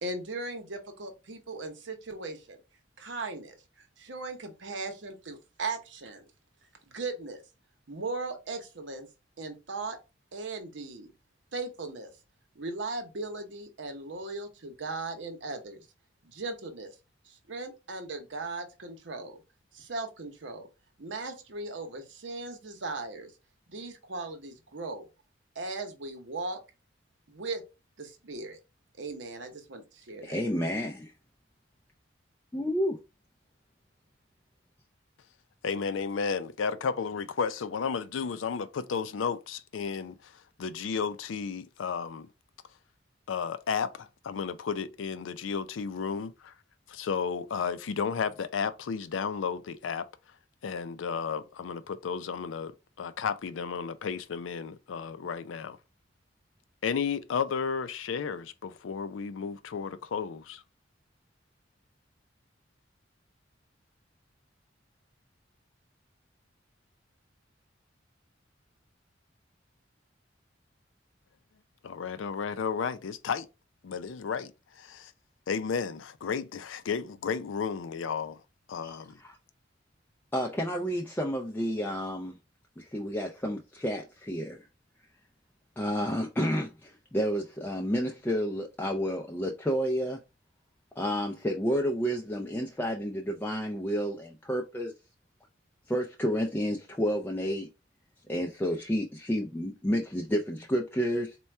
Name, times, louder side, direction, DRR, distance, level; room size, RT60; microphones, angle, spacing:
voice 1, 0.0-2.6 3.0-3.6 4.0-6.2 6.9-7.4 7.9-9.1 9.4-10.0 10.3-11.1 11.5-12.1 12.5-15.9 16.2-16.9 17.2-19.4 19.7-20.7 21.0-23.3 23.7-25.0 25.5-26.6 27.3-27.6 28.0-28.6 29.0-30.4, right 3 dB, 70° right, 0.8 m, -38 dB
voice 2, 30.2-31.1 32.5-33.0 78.8-79.4 80.3-82.4 82.8-84.6 85.8-90.2 91.0-94.9 95.9-97.7 98.3-101.4, equal, 10° left, 0.3 m, -30 dB
voice 3, 35.6-40.1 40.6-42.3 43.3-46.5 46.9-50.1 50.6-52.7 53.0-55.8 56.8-60.6 71.8-73.5 73.8-75.1 75.5-78.4 78.7-79.2, left 6 dB, 85° left, 0.4 m, -33 dB
4.2 x 2.2 x 3.3 m
head